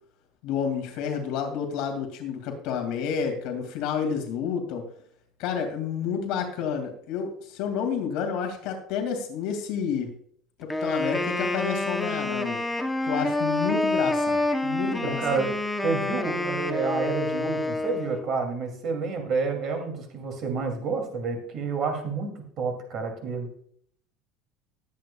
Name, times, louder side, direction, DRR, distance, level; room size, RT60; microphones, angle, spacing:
voice 1, 0.4-4.9 5.4-10.1 10.6-12.6 13.0-15.4, left 7 dB, 60° left, 4 dB, 2.2 m, -30 dB
Wind instrument woodwind instrument, 10.7-18.3, left 2 dB, 5° left, 0.7 m, -28 dB
voice 2, 15.0-15.5 15.8-23.5, right 4 dB, 35° right, 4 dB, 2.6 m, -29 dB
19.5 x 8.5 x 2.3 m, 0.63 s
cardioid pair, 175°, 0 cm